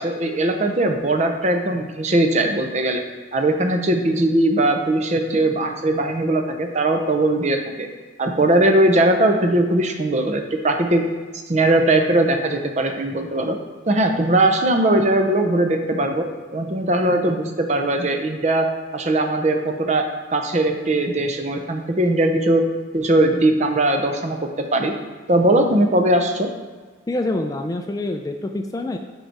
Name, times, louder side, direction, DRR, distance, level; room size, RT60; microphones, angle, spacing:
voice 1, 0.0-3.0 3.3-7.9 8.2-11.0 11.5-13.6 13.8-16.3 16.5-18.7 18.9-20.0 20.3-22.6 22.9-24.9 25.3-26.5, right 1 dB, 35° right, 5 dB, 0.6 m, -19 dB
voice 2, 27.1-29.0, left 2 dB, 20° left, 5 dB, 0.3 m, -26 dB
6.5 x 4.8 x 4.6 m, 1.4 s
head